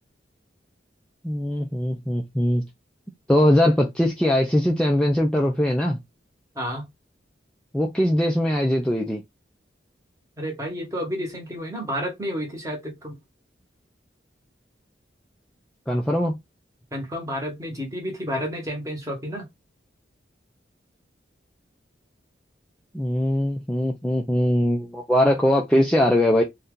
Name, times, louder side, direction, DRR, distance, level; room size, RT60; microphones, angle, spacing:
voice 1, 1.2-2.6 3.3-6.0 7.7-9.2 15.9-16.4 22.9-26.4, left 1 dB, 5° left, 0.4 m, -21 dB
voice 2, 6.5-6.9 10.4-13.2 16.9-19.5, equal, 15° right, 1.1 m, -30 dB
2.7 x 2.4 x 3.5 m
head